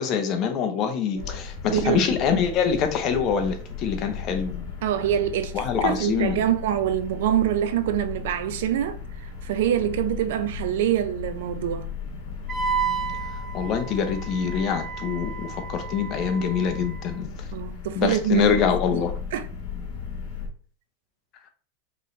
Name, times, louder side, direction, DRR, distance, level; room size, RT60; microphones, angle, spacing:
voice 1, 0.0-4.6 5.5-6.4 13.5-17.3 17.9-19.1, left 7 dB, 35° left, 0.8 m, -25 dB
sound 1, 1.2-20.5, left 6 dB, 60° left, 1.8 m, -36 dB
voice 2, 1.7-2.0 4.8-11.9 17.5-18.6 19.3-19.5, right 11 dB, 70° right, 0.6 m, -25 dB
Wind instrument woodwind instrument, 12.5-17.1, right 6 dB, 15° right, 0.4 m, -32 dB
5.2 x 3.1 x 3.2 m
supercardioid pair, 155°, 0 cm